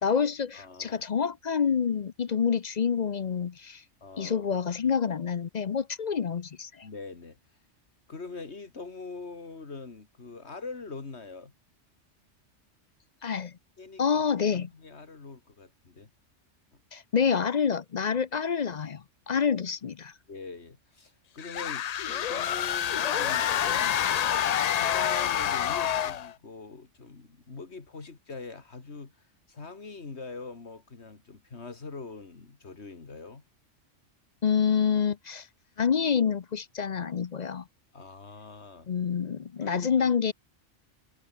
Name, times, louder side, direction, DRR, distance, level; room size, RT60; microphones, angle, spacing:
voice 1, 0.0-3.8 4.2-6.9 13.2-13.5 14.0-14.7 16.9-20.1 34.4-35.5 35.8-37.6 38.9-40.3, left 6 dB, 45° left, 0.6 m, -27 dB
voice 2, 0.5-1.0 4.0-4.5 6.8-7.4 8.1-11.5 13.8-14.2 14.5-16.1 20.3-24.1 24.7-29.1 29.5-33.4 37.9-38.9 39.6-40.1, left 4 dB, 60° left, 2.5 m, -43 dB
sound 1, 21.4-26.3, left 10 dB, 85° left, 0.3 m, -27 dB
omnidirectional pair, 1.2 m